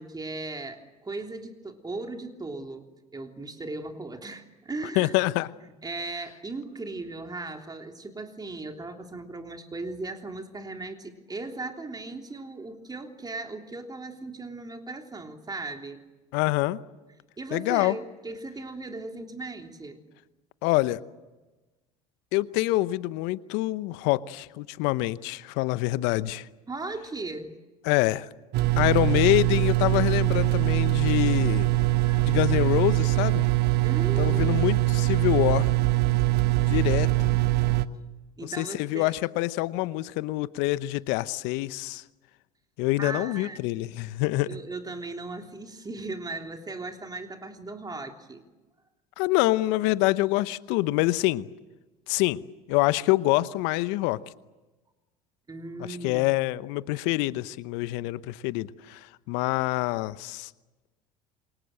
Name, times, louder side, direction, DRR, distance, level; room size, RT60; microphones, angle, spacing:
voice 1, 0.0-2.9 3.1-5.1 5.6-16.0 17.4-20.0 26.7-27.5 32.0-32.4 33.8-34.7 38.4-39.1 43.0-43.6 44.4-48.4 55.5-56.2, right 3 dB, 20° right, 4 dB, 3.3 m, -37 dB
voice 2, 5.0-5.5 16.3-16.8 17.5-18.0 20.6-21.0 22.3-26.5 27.8-28.3 28.8-31.7 32.2-33.4 34.2-35.7 36.7-37.3 38.6-42.0 42.8-44.5 49.2-51.5 52.1-52.4 52.7-54.2 55.8-60.5, left 19 dB, 65° left, 16 dB, 0.9 m, -26 dB
sound 1, 28.5-37.9, right 18 dB, 55° right, 1.2 m, -23 dB
28.0 x 23.5 x 7.8 m, 1.2 s
hypercardioid pair, 70°, 20 cm